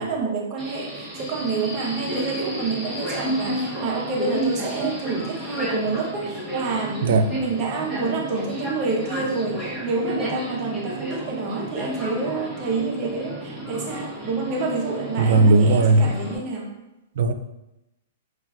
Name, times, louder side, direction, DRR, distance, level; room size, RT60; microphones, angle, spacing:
voice 1, 0.0-16.7, right 3 dB, 30° right, -1 dB, 0.6 m, -28 dB
Subway metro underground, 0.6-16.4, equal, 5° left, 1.0 m, -32 dB
voice 2, 15.2-16.1 17.2-17.3, right 3 dB, 60° right, 8 dB, 0.3 m, -16 dB
5.6 x 2.4 x 2.3 m, 0.94 s
hypercardioid pair, 170°, 0 cm